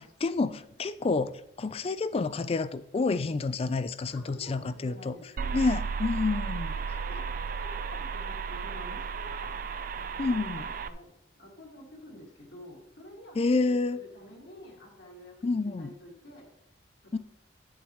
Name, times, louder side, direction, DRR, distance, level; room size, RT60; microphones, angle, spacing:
voice 1, 0.2-5.2 5.5-6.8 10.2-10.6 13.4-14.0 15.4-15.9 17.1-17.2, left 3 dB, 30° left, 0.3 m, -29 dB
voice 2, 4.1-5.6 6.7-15.5 15.8-16.5 17.0-17.1, left 1 dB, 60° left, 2.2 m, -49 dB
sound 1, 5.4-10.9, right 5 dB, 45° right, 0.4 m, -34 dB
10.0 x 7.2 x 3.1 m
head